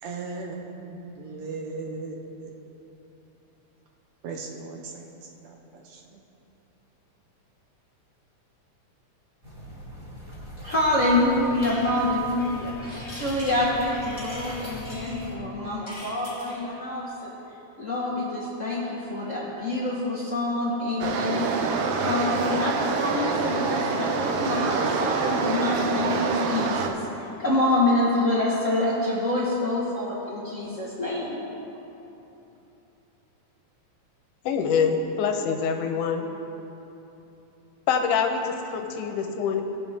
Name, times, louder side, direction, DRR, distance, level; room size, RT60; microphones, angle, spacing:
voice 1, 0.0-2.5 4.2-6.2, right 3 dB, 70° right, 1 dB, 2.0 m, -37 dB
sound 1, 9.4-15.4, equal, 25° right, 2.9 m, -41 dB
voice 2, 10.6-17.3 17.8-31.4, left 1 dB, 45° left, -7 dB, 1.0 m, -26 dB
sound 2, 11.6-16.7, left 1 dB, 20° left, 0.8 m, -42 dB
sound 3, 21.0-26.9, right 4 dB, 90° right, 1.2 m, -26 dB
voice 3, 34.5-36.2 37.9-39.6, left 6 dB, 85° left, 5 dB, 2.3 m, -25 dB
18.5 x 7.0 x 3.5 m, 3.0 s
omnidirectional pair, 3.5 m